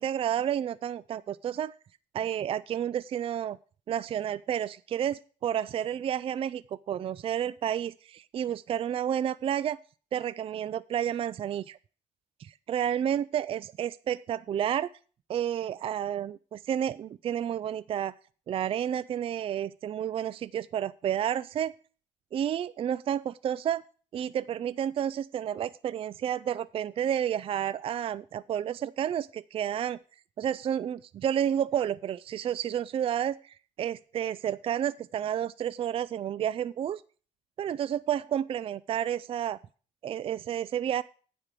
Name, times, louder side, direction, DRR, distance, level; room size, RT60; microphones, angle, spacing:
voice 1, 0.0-1.7 2.1-3.6 3.9-9.8 10.1-11.8 12.4-14.9 15.3-18.1 18.5-21.7 22.3-23.8 24.1-30.0 30.4-37.0 37.6-39.6 40.0-41.0, right 10 dB, 45° right, 17 dB, 0.3 m, -30 dB
9.8 x 5.0 x 7.5 m, 0.40 s
cardioid pair, 115°, 13 cm